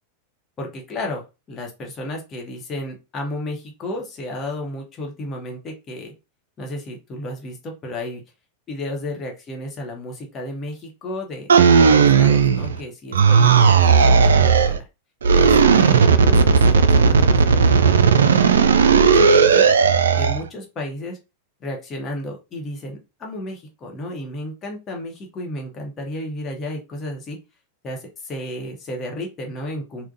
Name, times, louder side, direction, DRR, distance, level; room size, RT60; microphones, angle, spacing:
voice 1, 0.6-6.1 6.6-8.2 8.7-14.9 15.3-18.4 18.8-19.7 20.1-21.2 21.6-27.4 27.8-30.1, left 1 dB, 25° left, 1 dB, 1.0 m, -33 dB
sound 1, 11.5-12.8 13.1-14.8 15.2-20.4, right 5 dB, 65° right, 0.3 m, -14 dB
3.5 x 2.1 x 2.6 m, 0.27 s
figure-of-eight pair, 90°, 0 cm